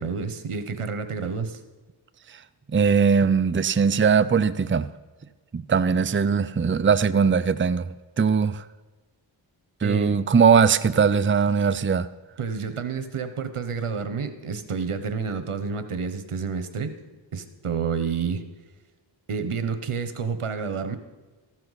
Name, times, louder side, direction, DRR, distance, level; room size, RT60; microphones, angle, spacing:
voice 1, 0.0-1.6 9.8-10.1 12.4-16.9 17.3-18.4 19.3-21.0, right 5 dB, 85° right, 1.1 m, -29 dB
voice 2, 2.7-4.9 5.5-8.6 9.8-12.1, right 6 dB, 25° right, 0.5 m, -20 dB
14.5 x 12.0 x 4.1 m
cardioid pair, 45°, 50 cm